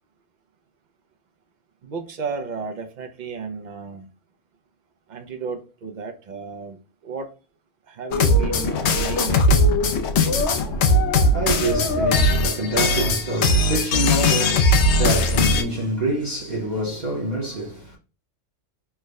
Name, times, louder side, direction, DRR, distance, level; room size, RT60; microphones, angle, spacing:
voice 1, 1.8-4.1 5.1-7.3 7.9-9.7, right 5 dB, 60° right, 0.4 m, -33 dB
sound 1, 8.1-15.6, left 2 dB, 70° left, 0.8 m, -19 dB
voice 2, 10.5-18.0, right 2 dB, 40° right, 0.8 m, -26 dB
3.4 x 2.1 x 3.4 m
omnidirectional pair, 1.3 m